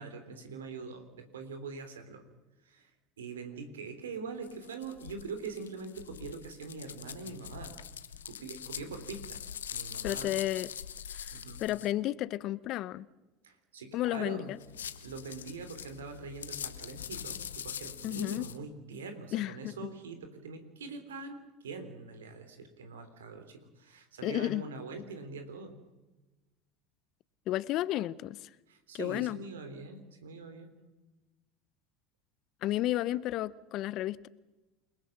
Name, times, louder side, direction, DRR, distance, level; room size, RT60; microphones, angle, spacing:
voice 1, 0.0-2.2 2.6-2.9 3.2-7.8 8.2-9.4 9.7-10.4 11.3-11.6 13.4-14.5 15.0-25.8 28.7-30.7, right 4 dB, 85° right, 3.5 m, -43 dB
sound 1, 4.4-11.9 14.6-18.6, left 9 dB, 85° left, 1.1 m, -43 dB
voice 2, 10.0-10.7 11.1-13.0 13.9-14.6 18.0-18.5 19.3-19.7 24.2-24.6 27.5-28.5 28.9-29.4 32.6-34.3, left 15 dB, 55° left, 0.8 m, -32 dB
29.0 x 19.5 x 6.0 m
hypercardioid pair, 80°, 0 cm